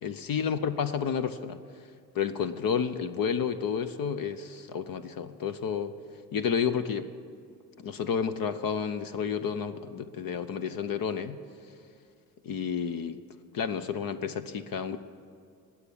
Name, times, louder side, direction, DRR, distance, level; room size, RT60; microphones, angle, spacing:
voice 1, 0.0-1.6 2.1-5.9 6.3-7.1 7.8-11.4 12.4-13.2 13.5-15.0, left 7 dB, 50° left, 11 dB, 0.8 m, -30 dB
19.5 x 7.2 x 8.6 m, 2.2 s
hypercardioid pair, 65°, 45 cm